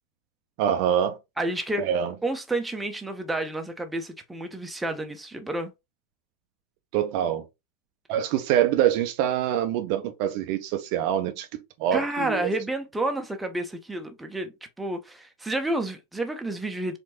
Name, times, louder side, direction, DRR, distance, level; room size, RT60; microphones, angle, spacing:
voice 1, 0.6-1.2 1.8-2.1 6.9-7.4 8.1-12.5, right 10 dB, 45° right, 0.5 m, -25 dB
voice 2, 1.4-1.9 2.2-5.7 11.9-14.5 14.8-17.0, right 1 dB, 5° right, 0.7 m, -30 dB
4.5 x 2.6 x 2.8 m
figure-of-eight pair, 90°, 0 cm